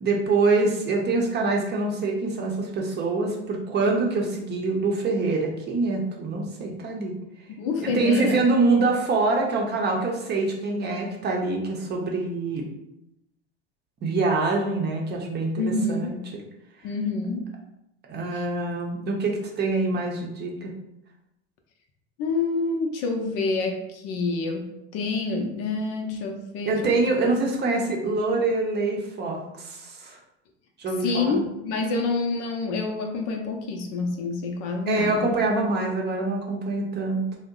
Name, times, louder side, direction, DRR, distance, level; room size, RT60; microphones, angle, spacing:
voice 1, 0.0-7.2 7.8-12.6 14.0-15.5 15.9-16.2 18.1-20.7 26.7-30.2 30.8-31.4 34.9-37.2, right 3 dB, 30° right, 0 dB, 0.7 m, -25 dB
voice 2, 7.5-8.5 15.6-16.1 16.8-17.5 18.3-18.4 22.2-27.0 31.0-35.3, left 3 dB, 50° left, 3 dB, 0.6 m, -27 dB
2.7 x 2.1 x 3.7 m, 0.86 s
hypercardioid pair, 90°, 32 cm